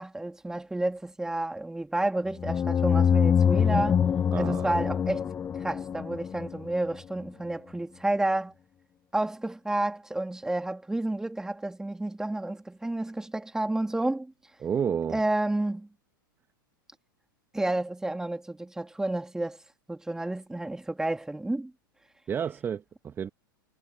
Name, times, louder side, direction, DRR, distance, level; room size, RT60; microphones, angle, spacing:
voice 1, 0.0-4.0 4.4-5.3 5.6-8.5 9.1-14.3 15.1-15.9 17.5-19.6 19.9-21.7, right 2 dB, 5° right, 3.7 m, -30 dB
sound 1, 2.4-6.9, left 8 dB, 15° left, 0.5 m, -25 dB
voice 2, 4.3-4.7 14.6-15.2 22.3-23.3, right 7 dB, 20° right, 1.8 m, -30 dB
figure-of-eight pair, 95°, 12 cm